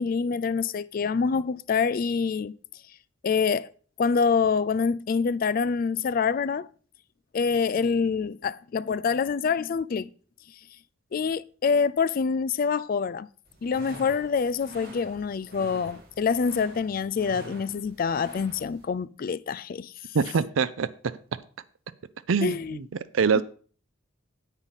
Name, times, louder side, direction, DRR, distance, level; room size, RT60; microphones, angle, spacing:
voice 1, 0.0-2.5 3.2-3.7 4.0-6.7 7.3-10.1 11.1-13.3 13.6-19.9 22.4-22.8 23.3-23.4, left 5 dB, 45° left, 0.3 m, -26 dB
sound 1, 13.5-18.8, right 1 dB, 50° right, 2.2 m, -46 dB
voice 2, 20.1-20.9 22.3-22.8 23.1-23.4, right 5 dB, 85° right, 0.5 m, -24 dB
9.7 x 8.1 x 4.1 m
head